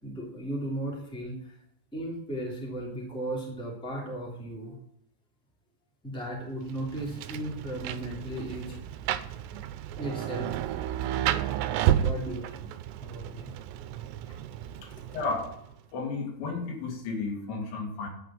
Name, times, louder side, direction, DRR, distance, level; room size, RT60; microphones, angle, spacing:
voice 1, 0.0-1.6 1.9-4.8 6.0-9.0 9.5-9.6 10.0-10.5 11.1-12.7 13.0-13.5, right 1 dB, ahead, -3 dB, 2.2 m, -36 dB
Rain, 6.7-15.7, right 11 dB, 85° right, 2.7 m, -32 dB
voice 2, 14.8-15.5 15.9-18.1, left 4 dB, 85° left, 1 dB, 4.3 m, -33 dB
11.5 x 5.3 x 7.7 m, 0.73 s
omnidirectional pair, 4.9 m